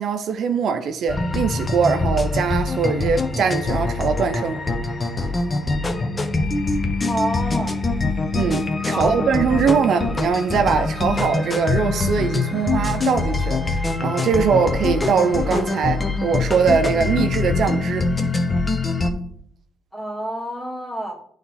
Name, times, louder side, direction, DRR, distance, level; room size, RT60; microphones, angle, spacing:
voice 1, 0.0-4.6 8.3-18.1, right 6 dB, 65° right, 0.5 m, -22 dB
sound 1, 1.1-19.1, left 3 dB, 25° left, 0.9 m, -23 dB
voice 2, 7.1-7.8 8.9-9.1 19.9-21.2, right 1 dB, 5° left, 2.1 m, -27 dB
9.2 x 3.2 x 4.1 m
cardioid pair, 90°, 0 cm